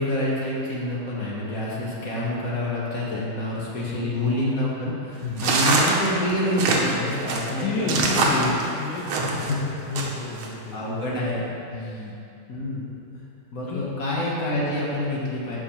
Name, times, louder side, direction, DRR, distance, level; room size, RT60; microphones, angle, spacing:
voice 1, 0.0-8.5 9.5-9.8 10.5-11.5 11.8-11.9 12.5-13.2 13.5-15.6, left 1 dB, 50° left, -5 dB, 1.3 m, -27 dB
sound 1, 5.4-9.5 10.0-10.5, right 3 dB, 90° right, 1.7 m, -23 dB
voice 2, 7.6-9.5 9.9-10.8 11.7-12.2 13.7-13.9, left 3 dB, 75° left, -3 dB, 1.3 m, -31 dB
11.5 x 4.7 x 3.0 m, 2.7 s
omnidirectional pair, 2.2 m